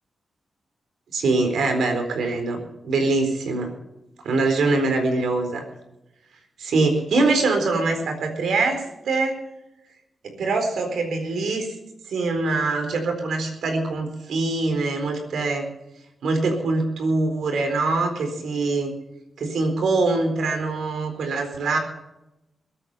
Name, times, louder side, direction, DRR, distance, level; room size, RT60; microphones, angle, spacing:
voice 1, 1.1-3.7 4.2-5.7 6.6-9.4 10.2-11.7 12.1-15.7 16.2-18.9 19.4-21.8, right 3 dB, 85° right, 5 dB, 4.1 m, -23 dB
21.0 x 8.9 x 5.7 m, 0.91 s
cardioid pair, 90°, 0 cm